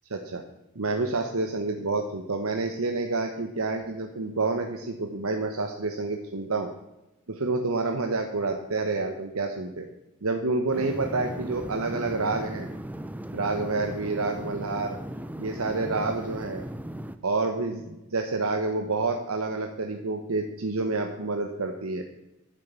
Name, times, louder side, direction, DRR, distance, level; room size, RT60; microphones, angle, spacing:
voice 1, 0.1-0.4 0.7-6.7 7.3-9.9 10.2-12.7 13.3-15.0 15.4-16.6 17.2-22.0, right 3 dB, 85° right, 4 dB, 1.0 m, -28 dB
sound 1, 10.7-17.2, right 1 dB, 5° right, 0.5 m, -37 dB
10.5 x 7.5 x 8.2 m, 0.96 s
head